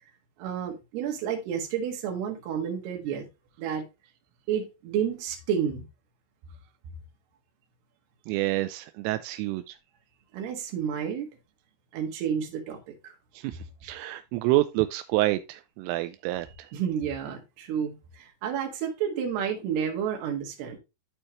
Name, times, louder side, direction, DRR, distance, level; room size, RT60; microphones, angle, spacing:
voice 1, 0.4-3.3 3.6-3.8 4.5-5.9 10.3-11.3 11.9-13.1 16.7-20.8, right 8 dB, 65° right, 3.4 m, -30 dB
voice 2, 8.3-9.8 13.3-16.7, right 17 dB, 85° right, 3.1 m, -28 dB
13.0 x 4.4 x 3.0 m
omnidirectional pair, 5.7 m